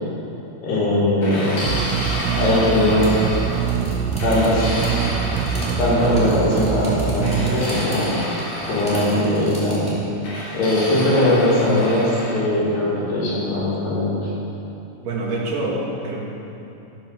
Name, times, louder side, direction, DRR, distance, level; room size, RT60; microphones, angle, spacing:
voice 1, 0.6-1.8 2.3-3.1 4.2-4.7 5.8-8.1 8.7-9.9 10.5-14.3, left 1 dB, 75° left, -8 dB, 6.1 m, -20 dB
sound 1, 1.2-3.7 4.2-6.1 7.2-9.2 10.2-12.4, left 1 dB, 45° left, 3.8 m, -30 dB
sound 2, 1.7-7.6, right 7 dB, 85° right, 2.8 m, -24 dB
sound 3, 2.9-10.0, equal, ahead, 2.9 m, -36 dB
voice 2, 15.0-16.2, right 2 dB, 55° right, -4 dB, 3.4 m, -26 dB
15.0 x 10.0 x 6.5 m, 2.9 s
omnidirectional pair, 4.8 m